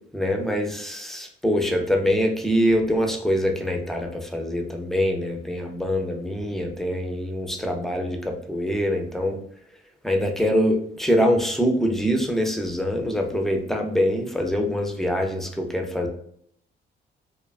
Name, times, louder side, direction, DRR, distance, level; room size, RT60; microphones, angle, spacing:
voice 1, 0.1-9.4 10.0-16.1, equal, ahead, 2 dB, 0.4 m, -24 dB
2.6 x 2.2 x 2.3 m, 0.66 s
cardioid pair, 90°, 20 cm